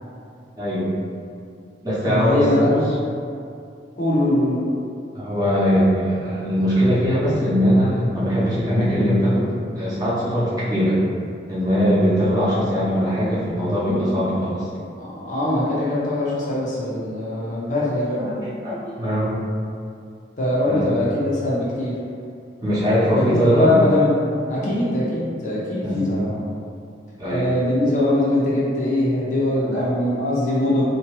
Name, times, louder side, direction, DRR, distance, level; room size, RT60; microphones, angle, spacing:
voice 1, 0.6-0.9 1.8-2.8 5.1-9.5 9.7-11.0 11.5-14.7 18.2-19.4 20.7-20.9 22.6-23.7 24.6-24.7 25.8-26.1 27.2-27.4 29.5-29.9, equal, 20° right, -10 dB, 0.7 m, -21 dB
voice 2, 2.0-2.8 4.0-4.6 15.0-18.2 20.4-21.9 23.1-24.1 24.5-26.4 27.3-30.8, left 1 dB, 45° left, -7 dB, 0.6 m, -22 dB
2.8 x 2.2 x 3.0 m, 2.4 s
head